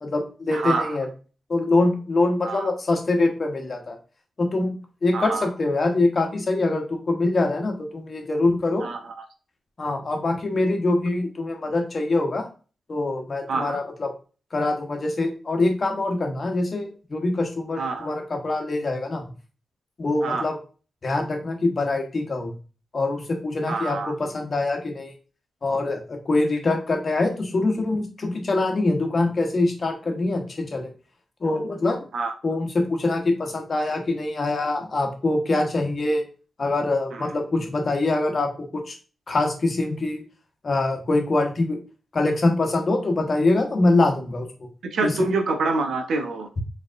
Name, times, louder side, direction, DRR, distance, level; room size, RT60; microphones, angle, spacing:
voice 1, 0.0-1.1 1.5-4.0 4.4-4.8 5.0-8.9 9.8-12.4 12.9-14.1 14.5-19.3 20.0-20.6 21.0-22.5 22.9-25.1 25.6-30.9 31.4-32.1 32.4-36.2 36.6-38.9 39.3-40.2 40.6-41.8 42.1-44.5 45.0-45.1, left 2 dB, 50° left, 3 dB, 1.0 m, -24 dB
voice 2, 0.5-1.0 2.4-2.7 5.1-5.5 8.8-9.0 13.5-13.8 17.8-18.1 20.2-20.5 23.7-24.1 32.1-32.3 37.1-37.3 44.9-46.5, right 3 dB, 80° right, 5 dB, 0.6 m, -26 dB
4.9 x 3.3 x 2.5 m, 0.37 s
cardioid pair, 55°, 0 cm